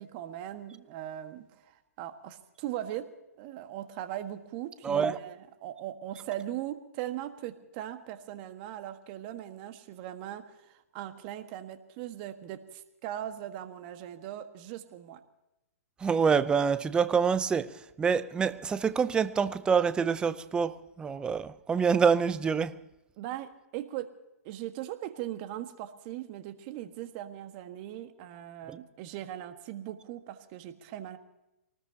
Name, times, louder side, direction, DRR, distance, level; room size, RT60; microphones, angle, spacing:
voice 1, 0.0-3.1 3.4-15.2 23.2-24.1 24.4-31.2, right 12 dB, 35° right, 1.6 m, -39 dB
voice 2, 4.8-5.1 16.0-22.8, right 6 dB, 10° right, 0.6 m, -26 dB
23.5 x 19.5 x 2.9 m
hypercardioid pair, 130°, 8 cm